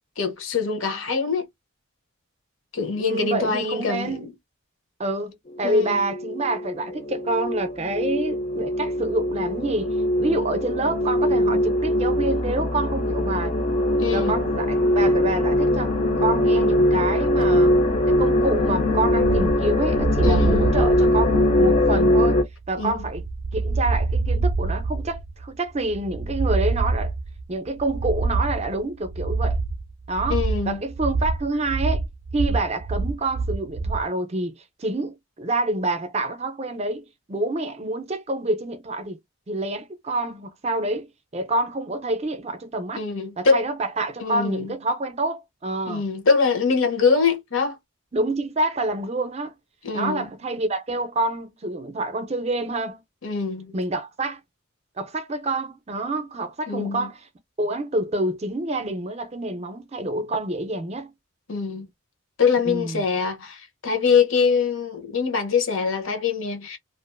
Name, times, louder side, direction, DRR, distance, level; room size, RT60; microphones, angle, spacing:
voice 1, 0.2-1.5 2.7-4.3 5.6-6.0 14.0-14.4 20.2-20.7 22.8-23.0 30.3-30.8 43.0-43.6 44.2-44.7 45.9-47.8 49.8-50.2 53.2-53.7 56.7-57.1 61.5-61.9 62.4-66.8, left 5 dB, 70° left, 0.9 m, -23 dB
voice 2, 3.0-4.3 5.0-13.6 14.1-17.7 18.1-22.4 22.7-23.2 23.5-27.1 27.5-29.6 30.1-32.0 32.3-39.2 39.5-41.1 41.3-43.0 43.4-46.0 48.1-49.5 49.9-53.0 53.7-54.4 55.0-57.3 57.6-61.1 62.7-63.0, right 2 dB, 30° right, 0.5 m, -27 dB
sound 1, 5.7-22.4, left 1 dB, 30° left, 0.5 m, -22 dB
sound 2, 19.2-34.1, right 3 dB, 85° right, 0.4 m, -26 dB
2.5 x 2.4 x 2.4 m
head